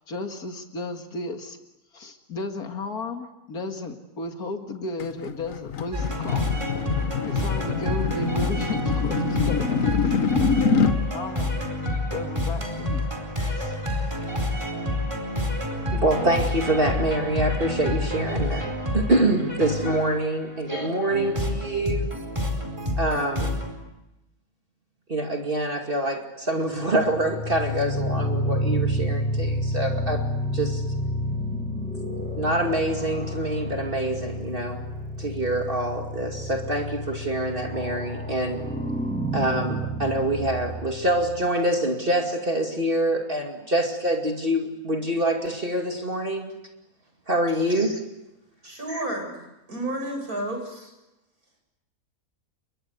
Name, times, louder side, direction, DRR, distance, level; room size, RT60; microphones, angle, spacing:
voice 1, 0.1-1.6 1.9-6.6 7.2-9.7 10.0-10.2 11.1-11.5 12.1-13.1 13.6-13.8, left 2 dB, 85° left, 4 dB, 2.4 m, -34 dB
sound 1, 5.0-11.0, left 6 dB, 65° left, 1.6 m, -25 dB
sound 2, 5.9-23.7, left 1 dB, 20° right, 4.7 m, -28 dB
voice 2, 15.9-22.1 23.0-23.6 25.1-30.2 30.5-30.8 32.4-34.8 35.2-38.6 39.3-46.5 47.3-48.0 48.9-49.0, right 1 dB, 35° right, 2 dB, 2.6 m, -25 dB
sound 3, 26.9-41.5, equal, 5° left, 5.4 m, -30 dB
voice 3, 48.6-49.4 49.7-50.9, right 1 dB, 80° right, 3 dB, 8.0 m, -31 dB
30.0 x 23.5 x 8.3 m, 0.98 s
omnidirectional pair, 1.5 m